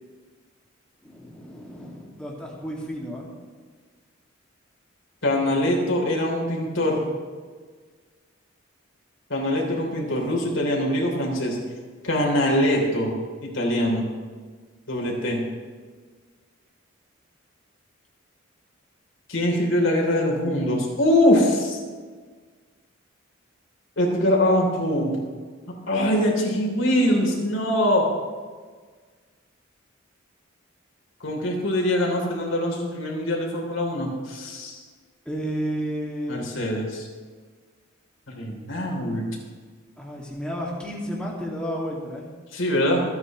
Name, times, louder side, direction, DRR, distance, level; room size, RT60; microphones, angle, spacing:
voice 1, 1.0-3.3 35.3-36.5 40.0-42.3, equal, 5° left, -4 dB, 2.2 m, -32 dB
voice 2, 5.2-7.0 9.3-11.6 12.0-14.1 14.9-15.4 19.3-21.8 24.0-25.2 25.9-28.1 31.2-34.8 36.3-37.1 38.3-39.2 42.5-43.0, left 1 dB, 70° left, 0 dB, 3.4 m, -23 dB
26.0 x 9.6 x 3.1 m, 1.5 s
head